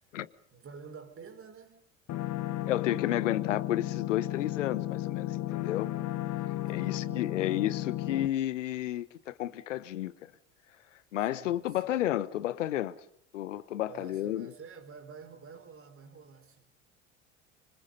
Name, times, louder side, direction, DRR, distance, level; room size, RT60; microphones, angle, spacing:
voice 1, 0.5-1.9 6.5-7.7 11.2-12.1 13.8-16.7, right 5 dB, 35° right, 4.4 m, -50 dB
sound 1, 2.1-8.3, left 15 dB, 45° left, 1.4 m, -34 dB
voice 2, 2.7-5.9 6.7-10.1 11.1-12.9 13.3-14.5, left 13 dB, 80° left, 1.1 m, -31 dB
26.0 x 25.0 x 5.4 m
hypercardioid pair, 70°, 37 cm